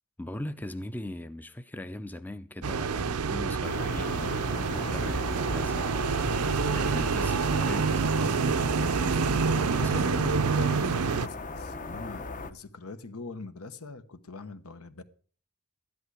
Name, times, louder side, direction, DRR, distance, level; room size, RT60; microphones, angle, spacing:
voice 1, 0.2-4.3 4.7-6.0 6.7-8.4 9.6-10.2, left 1 dB, 10° left, 0.5 m, -40 dB
sound 1, 2.6-11.3, right 5 dB, 80° right, 0.6 m, -27 dB
sound 2, 3.6-12.5, left 3 dB, 35° left, 0.8 m, -38 dB
voice 2, 9.7-15.0, left 3 dB, 75° left, 1.2 m, -42 dB
13.0 x 11.0 x 4.9 m
head